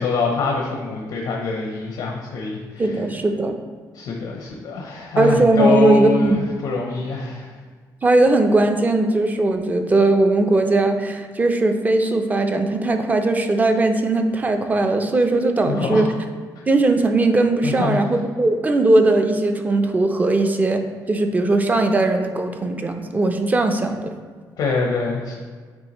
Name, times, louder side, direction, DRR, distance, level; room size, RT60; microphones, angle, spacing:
voice 1, 0.0-3.0 3.9-7.5 15.7-16.0 17.6-18.0 24.6-25.4, left 4 dB, 75° left, 0 dB, 0.8 m, -24 dB
voice 2, 2.8-3.5 5.2-6.4 8.0-16.1 16.7-20.8 21.1-24.1, right 2 dB, 20° right, 6 dB, 0.5 m, -19 dB
8.9 x 3.5 x 3.0 m, 1.5 s
cardioid pair, 115°, 7 cm